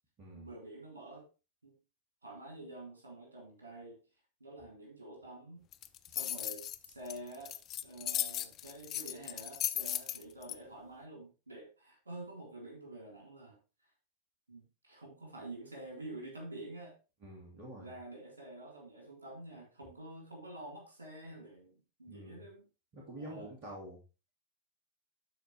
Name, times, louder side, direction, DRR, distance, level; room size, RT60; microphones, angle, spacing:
voice 1, 0.3-1.3 1.6-1.7 2.2-4.0 4.4-5.6 6.1-7.6 7.8-13.6 14.5-17.0 17.8-22.7 23.2-23.5, right 1 dB, 75° right, -1 dB, 3.7 m, -48 dB
sound 1, 5.7-10.5, left 12 dB, 35° left, 0.5 m, -36 dB
voice 2, 17.2-17.9 22.1-22.4 22.9-24.0, right 1 dB, 40° right, -1 dB, 2.6 m, -47 dB
12.0 x 4.6 x 3.5 m, 0.30 s
figure-of-eight pair, 90°, 0 cm